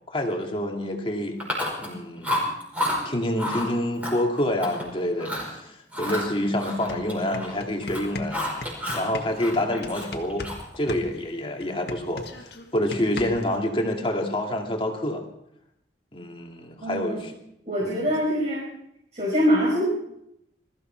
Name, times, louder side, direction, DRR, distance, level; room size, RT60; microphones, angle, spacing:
voice 1, 0.1-1.4 1.8-2.3 3.0-8.4 8.9-10.5 10.8-15.2 16.1-17.3 17.8-18.0, left 1 dB, 30° left, 2 dB, 2.2 m, -27 dB
Chewing mastication, 1.4-1.9 2.2-3.0 3.4-3.7 4.0-4.8 5.2-5.5 5.9-7.6 7.8-9.1 9.4-10.7, left 1 dB, 10° right, 5.2 m, -30 dB
sound 1, 6.3-6.4 6.7-10.6 10.9-13.6, left 2 dB, 60° left, 1.7 m, -37 dB
voice 2, 16.8-17.2 17.6-18.6 19.1-19.8, equal, 40° right, -4 dB, 5.1 m, -23 dB
21.5 x 14.0 x 4.5 m, 0.77 s
head